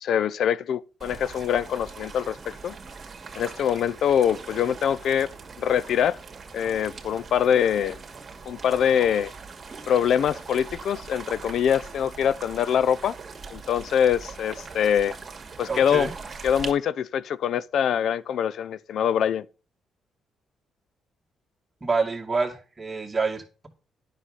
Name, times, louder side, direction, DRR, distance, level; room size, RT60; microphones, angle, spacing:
voice 1, 0.0-2.7 3.4-5.3 5.6-6.2 6.5-8.0 8.4-9.3 9.9-13.2 13.5-15.2 15.6-16.1 16.4-19.5, left 8 dB, 70° left, 0.5 m, -24 dB
sound 1, 1.0-16.7, right 4 dB, 40° right, 2.2 m, -41 dB
voice 2, 15.7-16.1 21.8-23.7, right 4 dB, 25° right, 2.4 m, -27 dB
9.9 x 6.5 x 5.6 m
cardioid pair, 90°, 0 cm